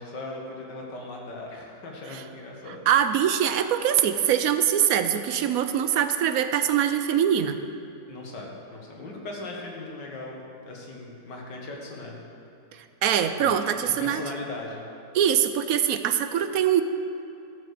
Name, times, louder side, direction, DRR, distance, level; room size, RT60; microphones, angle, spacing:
voice 1, 0.0-2.8 8.1-12.2 13.4-14.8, left 2 dB, 90° left, -1 dB, 2.3 m, -39 dB
voice 2, 2.9-7.6 13.0-14.2 15.1-16.8, right 9 dB, 70° right, 9 dB, 0.9 m, -23 dB
14.0 x 6.4 x 6.7 m, 2.7 s
omnidirectional pair, 1.8 m